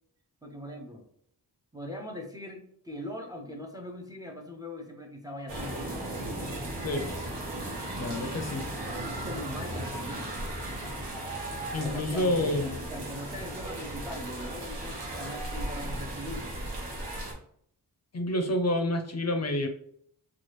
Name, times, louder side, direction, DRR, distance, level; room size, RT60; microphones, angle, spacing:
voice 1, 0.4-1.0 1.7-6.0 8.9-10.4 11.8-12.6 12.9-16.5, left 1 dB, 10° right, 3 dB, 0.4 m, -41 dB
sound 1, 5.5-17.3, right 1 dB, 80° right, 1.1 m, -36 dB
voice 2, 8.0-8.7 11.7-12.8 18.1-19.7, left 1 dB, 40° left, 5 dB, 0.5 m, -28 dB
3.1 x 2.3 x 3.0 m, 0.66 s
wide cardioid pair, 100°, 41 cm